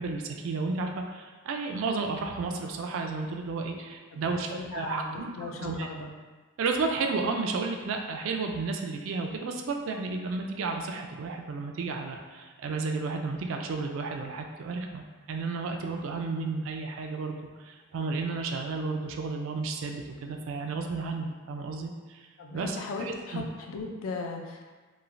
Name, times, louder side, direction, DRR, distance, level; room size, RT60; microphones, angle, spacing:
voice 1, 0.0-5.9 6.6-15.0 15.3-22.3 22.5-23.5, right 4 dB, 65° right, 4 dB, 0.3 m, -32 dB
voice 2, 4.1-6.1 22.4-24.7, left 3 dB, 80° left, 2 dB, 0.4 m, -37 dB
3.0 x 2.3 x 2.5 m, 1.3 s
head